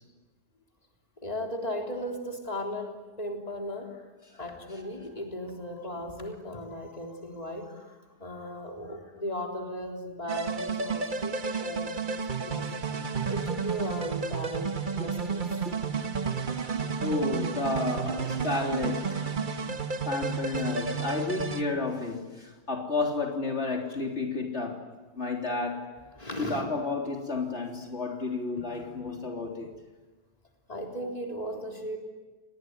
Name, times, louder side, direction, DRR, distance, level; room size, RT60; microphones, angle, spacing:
voice 1, 1.2-4.1 4.3-12.0 12.4-12.7 13.3-15.4 26.2-26.7 28.6-28.9 30.7-32.0, equal, 35° left, 1 dB, 3.9 m, -36 dB
sound 1, 10.3-21.6, right 5 dB, 45° right, 1.4 m, -31 dB
voice 2, 17.0-19.3 20.1-24.9 25.2-25.9 26.4-29.7, left 3 dB, 75° left, 1 dB, 3.8 m, -31 dB
30.0 x 20.5 x 9.6 m, 1.3 s
omnidirectional pair, 1.2 m